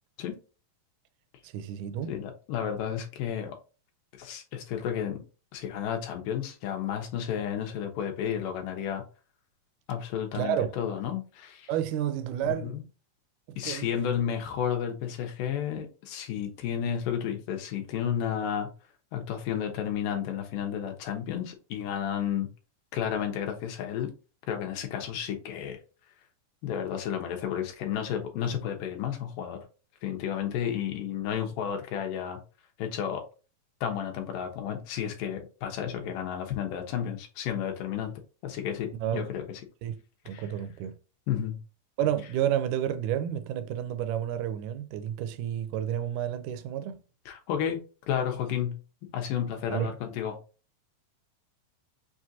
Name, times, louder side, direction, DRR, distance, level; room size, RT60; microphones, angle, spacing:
voice 1, 1.4-2.1 10.3-10.7 11.7-12.8 13.5-13.9 39.0-39.2 39.8-40.9 42.0-47.0 49.7-49.9, right 10 dB, 80° right, 1.8 m, -30 dB
voice 2, 2.1-3.6 4.2-5.2 5.5-9.0 9.9-11.7 12.4-12.8 13.6-18.7 19.1-22.5 22.9-24.1 24.5-25.8 26.6-29.6 30.0-32.4 32.8-33.2 33.8-38.1 38.4-39.4 40.3-40.4 41.3-41.6 47.3-47.8 48.1-48.8 49.1-50.4, left 9 dB, 80° left, 2.4 m, -32 dB
5.9 x 2.5 x 2.7 m
omnidirectional pair, 3.9 m